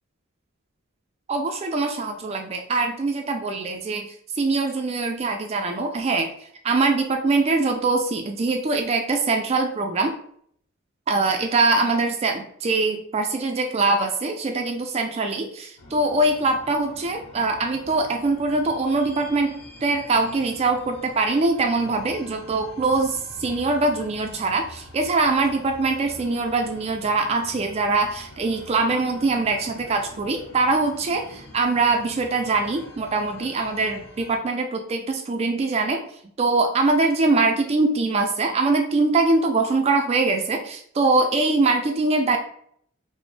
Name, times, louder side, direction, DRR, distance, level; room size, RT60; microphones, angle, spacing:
voice 1, 1.3-6.3 6.6-10.1 11.1-19.5 19.8-36.0 36.4-42.4, right 3 dB, 30° right, 4 dB, 0.3 m, -23 dB
sound 1, 15.8-34.4, left 1 dB, 90° left, 0.9 m, -45 dB
4.9 x 2.0 x 3.1 m, 0.64 s
head